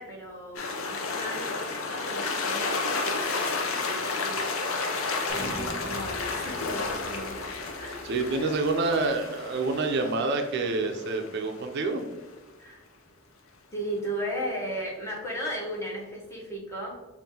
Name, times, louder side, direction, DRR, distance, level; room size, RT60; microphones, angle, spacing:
voice 1, 0.0-5.1 5.3-7.5 7.7-8.2 12.6-12.8 13.7-17.1, equal, 15° left, -3 dB, 0.9 m, -36 dB
sound 1, 0.5-12.0, left 3 dB, 85° left, 0.6 m, -32 dB
sound 2, 5.3-9.1 9.6-9.7, right 1 dB, 45° left, 1.3 m, -42 dB
voice 2, 8.0-12.0, right 3 dB, 55° right, 5 dB, 0.4 m, -27 dB
5.3 x 2.5 x 2.7 m, 1.2 s
head